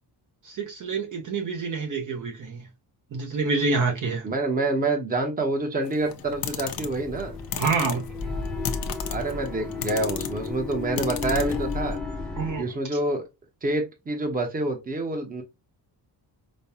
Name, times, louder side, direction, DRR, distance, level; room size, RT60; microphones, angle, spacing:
voice 1, 0.4-2.6 3.1-4.3 7.6-8.0 12.4-12.7, right 4 dB, 45° right, 0.9 m, -27 dB
voice 2, 4.2-7.3 9.1-12.0 12.6-13.2 13.6-15.4, right 2 dB, 20° right, 0.9 m, -27 dB
sound 1, 5.8-11.9, left 9 dB, 55° left, 0.7 m, -35 dB
sound 2, 6.1-12.6, left 4 dB, ahead, 0.5 m, -33 dB
5.2 x 2.3 x 2.7 m
wide cardioid pair, 170°, 42 cm